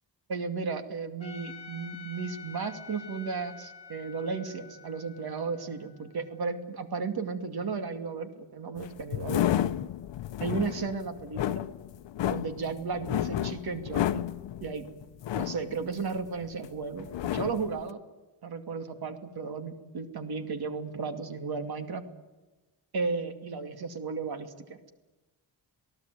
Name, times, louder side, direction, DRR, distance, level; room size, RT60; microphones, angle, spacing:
voice 1, 0.3-9.7 10.4-11.6 12.3-14.2 14.6-14.8 15.3-18.0 18.4-22.0 22.9-24.9, right 4 dB, 55° right, 8 dB, 2.6 m, -34 dB
Trumpet, 1.2-6.4, left 6 dB, 15° left, 5.0 m, -48 dB
sound 1, 8.8-16.7 17.0-17.8, left 12 dB, 75° left, 0.8 m, -31 dB
28.0 x 18.0 x 9.3 m, 1.2 s
wide cardioid pair, 165°, 44 cm